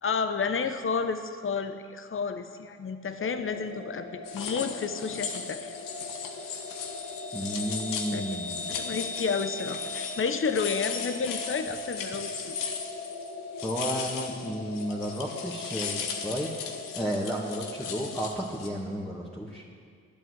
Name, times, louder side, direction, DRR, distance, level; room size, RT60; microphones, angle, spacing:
voice 1, 0.0-5.7 8.1-8.2 8.7-12.8, left 5 dB, 40° left, 8 dB, 1.0 m, -31 dB
sound 1, 3.2-18.2, left 2 dB, 60° left, 1.6 m, -40 dB
sound 2, 4.3-13.3 13.6-18.7, left 6 dB, 80° left, 1.2 m, -37 dB
voice 2, 7.3-8.6 13.6-16.5 16.9-19.6, equal, ahead, -4 dB, 2.2 m, -32 dB
11.0 x 8.5 x 8.2 m, 2.1 s
hypercardioid pair, 45°, 32 cm